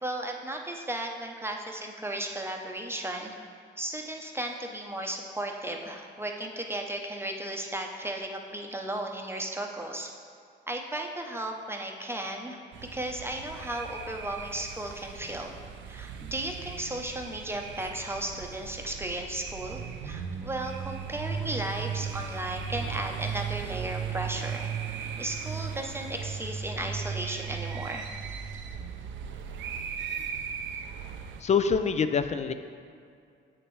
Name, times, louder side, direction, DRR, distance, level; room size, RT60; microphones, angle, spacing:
voice 1, 0.0-3.3 3.8-10.1 10.7-12.6 12.9-15.5 15.9-28.1, right 1 dB, 10° right, 2 dB, 0.7 m, -35 dB
sound 1, 12.7-31.4, right 7 dB, 70° right, 0.5 m, -37 dB
voice 2, 31.4-32.5, left 6 dB, 35° left, 9 dB, 0.4 m, -25 dB
7.9 x 5.9 x 3.2 m, 2.3 s
cardioid pair, 90°, 20 cm